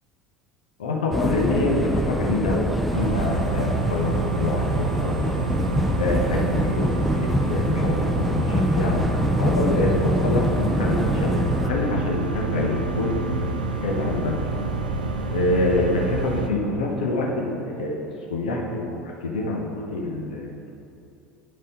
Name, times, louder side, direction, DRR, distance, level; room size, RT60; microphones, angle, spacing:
voice 1, 0.8-5.4 6.0-14.3 15.3-20.5, left 2 dB, 70° left, -1 dB, 1.1 m, -26 dB
sound 1, 1.1-11.7, equal, ahead, 0.5 m, -25 dB
sound 2, 2.9-16.5, right 3 dB, 80° right, 0.6 m, -28 dB
10.5 x 5.3 x 4.1 m, 2.6 s
figure-of-eight pair, 70°, 4 cm